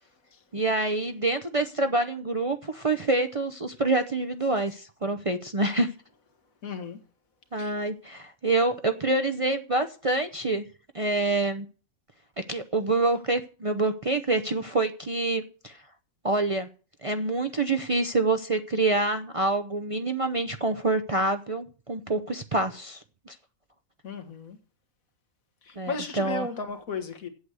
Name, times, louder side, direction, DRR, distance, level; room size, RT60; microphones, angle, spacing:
voice 1, 0.5-5.9 7.5-10.6 10.9-11.7 12.4-15.8 16.2-16.7 17.0-23.3 25.8-26.5, right 2 dB, 35° right, 0.6 m, -26 dB
voice 2, 6.6-7.0 7.6-7.7 24.0-24.6 25.6-27.3, left 4 dB, 85° left, 1.9 m, -35 dB
8.1 x 7.7 x 8.1 m
omnidirectional pair, 1.4 m